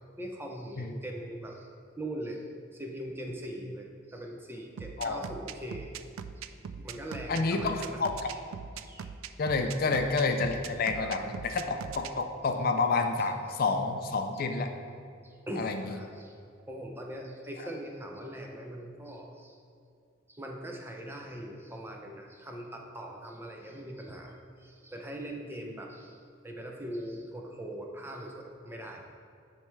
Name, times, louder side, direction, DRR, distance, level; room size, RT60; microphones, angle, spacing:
voice 1, 0.2-1.7 2.0-2.4 2.7-5.9 6.4-6.5 6.8-8.4 8.8-9.1 9.9-10.0 10.9-11.4 15.2-16.3 16.7-19.6 20.3-24.3 24.6-26.2 26.4-29.2, right 1 dB, 10° right, 1 dB, 0.5 m, -41 dB
sound 1, 4.8-12.1, right 7 dB, 85° right, 0.3 m, -41 dB
voice 2, 7.3-8.1 9.4-14.7 15.6-16.0, left 3 dB, 45° left, 6 dB, 0.4 m, -29 dB
9.1 x 3.3 x 4.6 m, 2.5 s
head